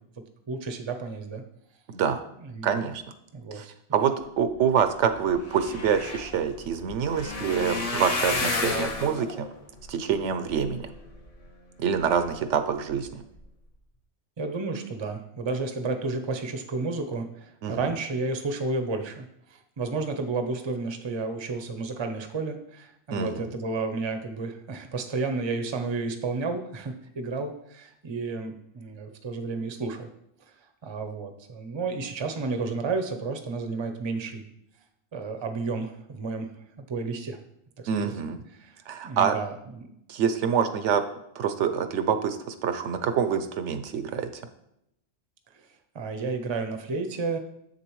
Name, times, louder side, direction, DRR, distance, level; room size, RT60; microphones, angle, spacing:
voice 1, 0.5-1.4 2.4-2.8 3.3-3.6 14.4-30.1 30.8-34.4 35.1-36.5 36.9-37.4 37.8-38.1 38.5-38.7 39.0-39.9 45.9-47.4, right 3 dB, 30° right, 6 dB, 0.6 m, -31 dB
voice 2, 1.9-2.3 2.6-3.0 3.5-3.7 3.9-9.5 9.9-10.9 11.8-13.1 17.6-17.9 23.1-23.5 37.9-38.4 38.9-39.3 40.1-41.0 41.4-44.4, right 7 dB, 85° right, 9 dB, 1.0 m, -26 dB
sound 1, 5.1-11.5 12.0-12.5 12.9-13.1 13.4-13.5, left 3 dB, 35° left, 0.7 m, -32 dB
7.4 x 6.7 x 3.1 m, 0.77 s
omnidirectional pair, 1.2 m